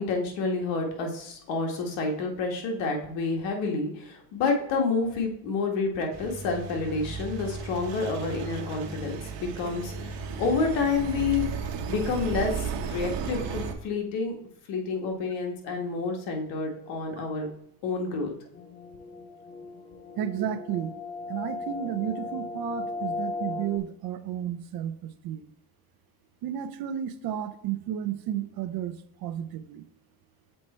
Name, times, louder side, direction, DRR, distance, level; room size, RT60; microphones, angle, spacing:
voice 1, 0.0-11.4 11.9-14.3 14.7-17.5 17.8-18.3, left 4 dB, 85° left, 2 dB, 1.8 m, -29 dB
Engine, 6.1-13.7, right 5 dB, 80° right, 1.1 m, -34 dB
sound 1, 18.5-23.8, left 3 dB, 25° left, 0.5 m, -36 dB
voice 2, 20.2-20.9 21.3-25.4 26.4-29.0 29.2-29.9, right 10 dB, 55° right, 11 dB, 0.7 m, -32 dB
6.6 x 4.5 x 4.3 m, 0.74 s
cardioid pair, 145°, 43 cm